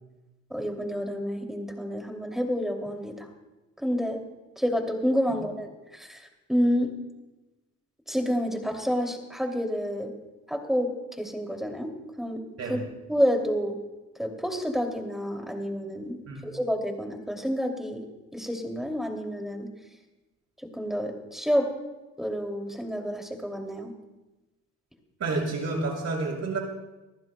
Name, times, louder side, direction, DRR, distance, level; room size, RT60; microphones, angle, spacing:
voice 1, 0.5-3.3 3.8-4.2 4.6-6.9 8.1-10.1 10.5-10.9 11.2-11.9 12.2-12.4 12.7-12.8 13.1-13.8 14.2-16.2 16.4-18.0 18.3-19.7 20.7-21.7 22.2-23.9, equal, ahead, 3 dB, 2.6 m, -29 dB
voice 2, 25.2-26.6, right 3 dB, 60° right, -1 dB, 5.9 m, -29 dB
25.5 x 14.5 x 2.2 m, 1.1 s
cardioid pair, 90°, 30 cm